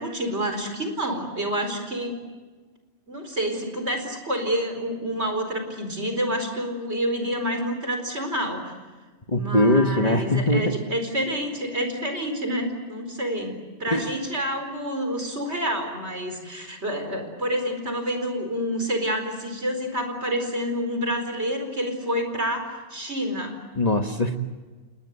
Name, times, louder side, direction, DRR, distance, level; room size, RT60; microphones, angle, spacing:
voice 1, 0.0-2.2 3.1-8.8 9.3-23.6, equal, 55° right, 6 dB, 4.7 m, -28 dB
voice 2, 9.3-10.8 13.9-14.1 23.7-24.4, left 1 dB, 30° left, 5 dB, 1.3 m, -21 dB
29.5 x 19.5 x 8.3 m, 1.3 s
omnidirectional pair, 1.3 m